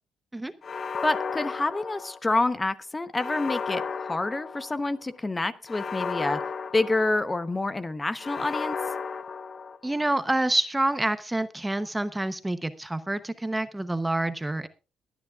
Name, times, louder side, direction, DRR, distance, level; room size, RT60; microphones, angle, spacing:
sound 1, 0.6-2.5 3.1-5.0 5.7-7.5 8.2-10.1, left 5 dB, 45° left, 0.8 m, -34 dB
voice 1, 1.0-6.4 6.7-8.8, left 2 dB, 20° left, 11 dB, 1.0 m, -27 dB
voice 2, 9.8-14.7, right 1 dB, 10° right, 11 dB, 0.9 m, -27 dB
22.5 x 9.5 x 2.4 m, 0.31 s
cardioid pair, 90°, 0 cm